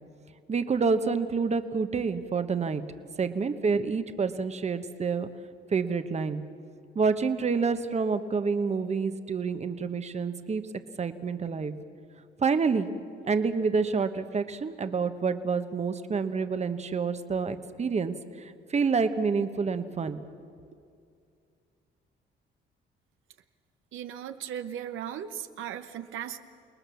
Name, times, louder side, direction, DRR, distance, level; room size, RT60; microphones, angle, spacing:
voice 1, 0.5-2.8 3.2-5.3 5.7-6.4 6.9-10.6 11.0-11.7 12.4-12.9 13.2-20.2, right 5 dB, 35° right, 10 dB, 1.1 m, -28 dB
voice 2, 23.9-26.4, right 10 dB, 85° right, 8 dB, 1.0 m, -37 dB
29.0 x 19.5 x 7.0 m, 2.4 s
cardioid pair, 90°, 20 cm